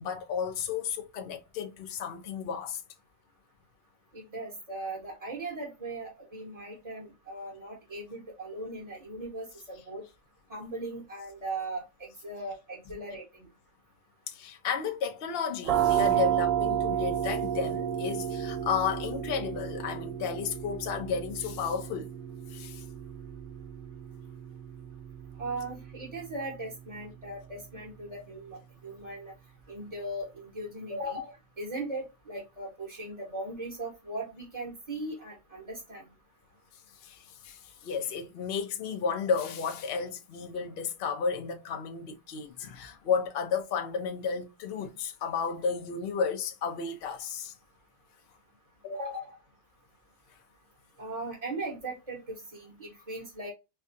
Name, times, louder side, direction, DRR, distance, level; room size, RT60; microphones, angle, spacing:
voice 1, 0.0-2.8 14.3-22.1 22.5-22.8 37.0-47.5, left 6 dB, 50° left, 0.8 m, -33 dB
voice 2, 4.1-10.0 10.5-13.5 25.4-29.3 29.7-36.0 48.9-49.4 51.0-53.5, right 2 dB, 25° right, 1.2 m, -38 dB
sound 1, 15.6-27.2, right 10 dB, 70° right, 0.6 m, -32 dB
4.5 x 2.3 x 2.6 m
omnidirectional pair, 1.6 m